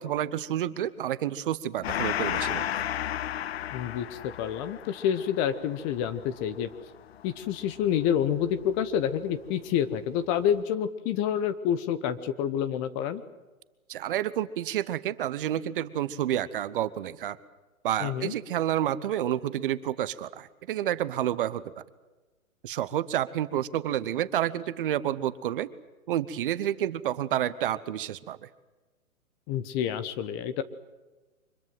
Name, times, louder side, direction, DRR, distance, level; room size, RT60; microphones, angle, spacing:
voice 1, 0.0-2.9 13.9-17.4 17.8-21.6 22.6-25.7 26.1-28.5, right 11 dB, 40° right, 16 dB, 1.0 m, -29 dB
Gong, 1.8-8.8, left 11 dB, 45° left, 0.7 m, -34 dB
voice 2, 3.7-6.7 7.2-13.2 18.0-18.3 29.5-30.6, left 9 dB, 20° left, 12 dB, 0.9 m, -28 dB
25.0 x 22.0 x 7.7 m, 1.2 s
hypercardioid pair, 135°, 42 cm